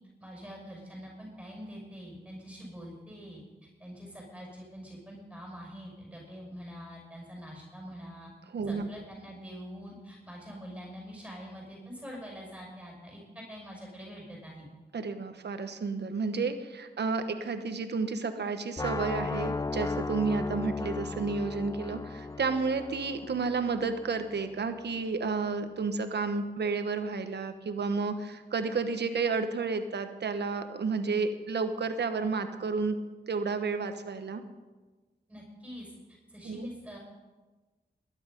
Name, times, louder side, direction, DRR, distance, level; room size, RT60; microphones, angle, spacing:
voice 1, 0.2-3.4 3.8-8.3 8.6-14.7 35.3-37.0, equal, 5° right, -3 dB, 6.3 m, -45 dB
voice 2, 8.5-8.9 14.9-32.9 33.3-34.4 36.4-36.7, right 4 dB, 70° right, 8 dB, 1.3 m, -31 dB
sound 1, 18.8-24.7, left 3 dB, 20° left, 0.4 m, -36 dB
20.0 x 10.5 x 5.4 m, 1.2 s
cardioid pair, 60°, 18 cm